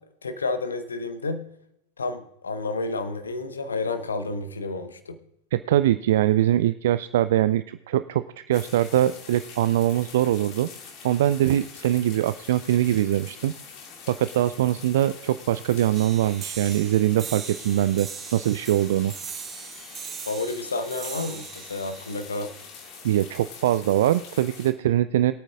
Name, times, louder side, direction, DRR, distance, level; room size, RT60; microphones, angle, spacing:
voice 1, 0.2-1.4 2.0-5.2 20.3-22.5, left 3 dB, 75° left, 10 dB, 1.1 m, -30 dB
voice 2, 5.5-10.7 11.0-13.5 14.1-19.1 23.0-25.3, right 12 dB, 55° right, 13 dB, 0.3 m, -22 dB
sound 1, 8.5-24.7, left 5 dB, 40° left, 2.2 m, -44 dB
sound 2, 15.9-23.0, right 7 dB, 25° right, 0.8 m, -40 dB
22.5 x 9.0 x 2.4 m, 0.80 s
figure-of-eight pair, 90°, 0 cm